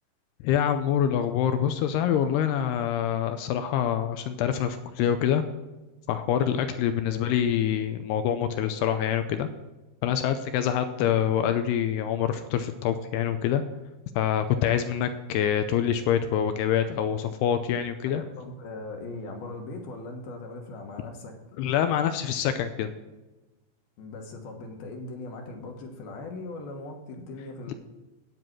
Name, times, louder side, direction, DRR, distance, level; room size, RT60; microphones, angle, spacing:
voice 1, 0.4-5.4 6.1-9.5 10.0-13.6 14.2-18.2 21.6-22.9 27.7-27.8, left 9 dB, 85° left, 9 dB, 2.4 m, -25 dB
voice 2, 7.0-7.4 18.1-21.4 24.0-27.7, left 2 dB, 65° left, 3 dB, 2.8 m, -39 dB
10.0 x 9.3 x 4.6 m, 1.1 s
omnidirectional pair, 5.2 m